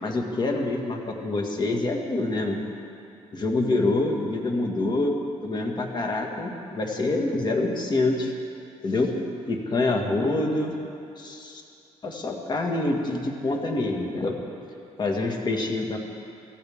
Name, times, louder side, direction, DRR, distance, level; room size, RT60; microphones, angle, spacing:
voice 1, 0.0-2.6 3.3-8.3 8.8-9.1 9.5-10.7 11.2-11.6 12.0-14.4 15.0-16.0, left 2 dB, 40° left, 2 dB, 2.0 m, -26 dB
24.5 x 14.5 x 3.7 m, 2.6 s
cardioid pair, 110°, 12 cm